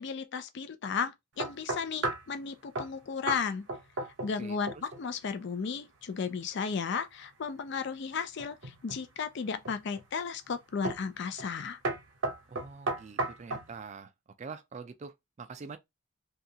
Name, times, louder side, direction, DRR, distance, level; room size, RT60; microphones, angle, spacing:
voice 1, 0.0-3.6 4.2-11.8, left 5 dB, 50° left, 0.4 m, -34 dB
sound 1, 1.4-2.3 2.7-3.0 3.3-3.4 3.7-4.4 4.7-5.0 8.4-9.0 9.6-10.1 10.8-11.1 11.4-11.6 11.8-13.7, right 2 dB, 55° right, 0.7 m, -34 dB
voice 2, 4.4-4.8 12.5-14.1 14.4-15.8, right 5 dB, 30° right, 0.3 m, -45 dB
2.7 x 2.3 x 2.7 m
head